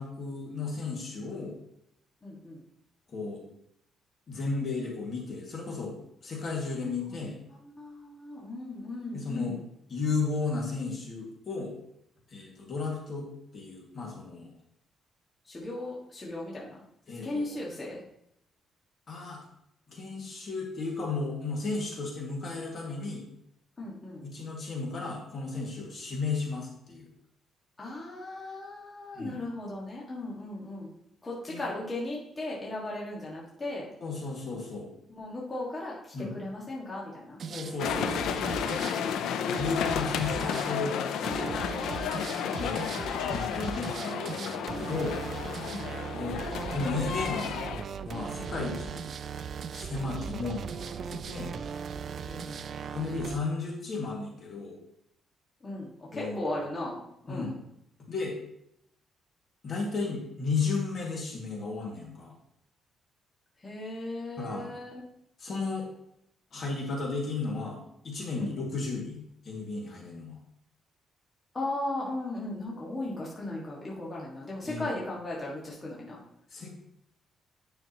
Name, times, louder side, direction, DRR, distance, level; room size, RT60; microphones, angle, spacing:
voice 1, 0.0-1.6 3.1-3.4 4.3-5.9 6.2-7.3 9.1-9.6 9.9-11.7 12.3-13.3 13.5-14.5 17.1-17.6 19.1-19.4 19.9-23.3 24.2-27.1 29.1-29.4 31.5-31.6 34.0-34.9 36.1-36.3 37.5-38.3 39.6-41.0 41.3-41.6 42.6-42.9 43.3-45.2 46.1-46.4 46.7-47.5 48.0-49.0 49.7-51.5 52.9-54.8 56.1-56.5 57.3-57.6 58.1-58.4 59.6-62.3 64.4-64.7 65.4-65.9 66.5-70.4 74.6-74.9 76.5-76.7, left 4 dB, 45° left, -1 dB, 2.0 m, -34 dB
voice 2, 2.2-2.6 6.8-9.6 15.4-16.8 17.1-18.0 23.8-24.3 27.8-30.9 31.2-33.9 35.1-37.4 42.1-42.6 45.7-45.9 52.2-53.0 55.6-57.6 63.6-65.0 68.4-68.6 71.5-76.2, left 2 dB, 20° left, -4 dB, 1.7 m, -37 dB
sound 1, 37.4-53.4, right 6 dB, 45° right, 0.4 m, -38 dB
sound 2, 37.8-47.8, left 8 dB, 85° left, 0.5 m, -32 dB
9.4 x 6.3 x 3.0 m, 0.76 s
cardioid pair, 150°, 0 cm